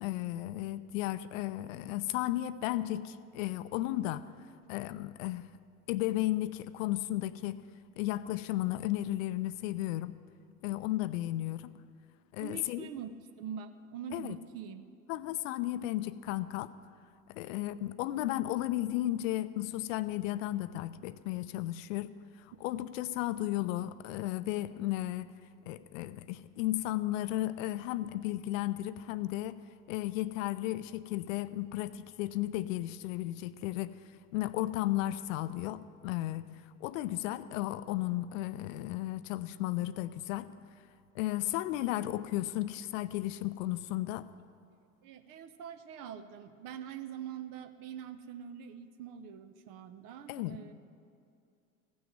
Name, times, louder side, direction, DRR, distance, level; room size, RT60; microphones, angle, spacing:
voice 1, 0.0-4.3 4.7-5.4 5.9-7.6 8.0-10.1 10.6-11.7 12.3-12.9 14.1-14.4 15.1-16.7 17.3-22.1 22.4-25.3 25.7-29.6 29.9-33.9 34.3-36.5 36.8-40.5 41.1-44.3 50.3-50.6, left 15 dB, 60° left, 15 dB, 0.6 m, -34 dB
voice 2, 12.4-14.9 22.5-22.6 45.0-50.7, right 8 dB, 45° right, 9 dB, 0.7 m, -44 dB
15.5 x 6.3 x 7.3 m, 2.4 s
hypercardioid pair, 75°, 46 cm